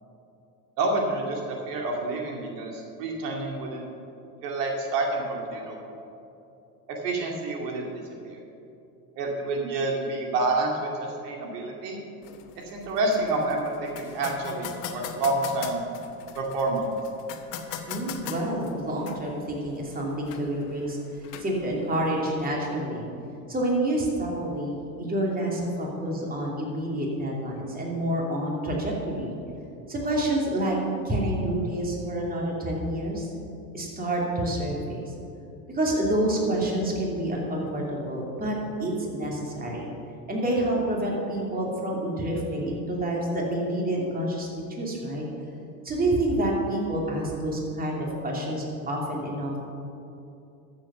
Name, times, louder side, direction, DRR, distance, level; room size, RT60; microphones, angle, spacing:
voice 1, 0.8-3.8 4.4-5.8 6.9-7.8 8.2-8.4 9.2-10.9 11.2-12.0 12.7-15.8 16.3-16.9, right 2 dB, 80° right, 0 dB, 2.5 m, -28 dB
sound 1, 12.2-22.2, left 8 dB, 80° left, 1.3 m, -41 dB
voice 2, 17.9-21.0 21.4-23.1 23.5-29.3 29.9-30.8 31.0-33.3 33.7-35.1 35.7-39.9 40.3-45.3 45.8-49.6, right 1 dB, 20° right, -2 dB, 2.8 m, -28 dB
13.0 x 7.5 x 6.8 m, 2.8 s
supercardioid pair, 115°, 47 cm